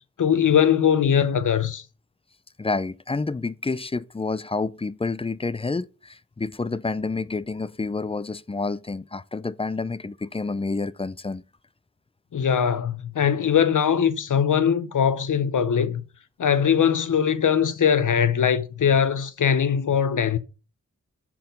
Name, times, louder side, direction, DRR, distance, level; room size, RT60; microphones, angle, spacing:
voice 1, 0.2-1.8 12.3-16.0 16.4-20.4, left 8 dB, 70° left, 0.7 m, -21 dB
voice 2, 2.6-11.4, left 3 dB, 20° left, 0.4 m, -29 dB
5.8 x 4.5 x 5.2 m
cardioid pair, 40°, 32 cm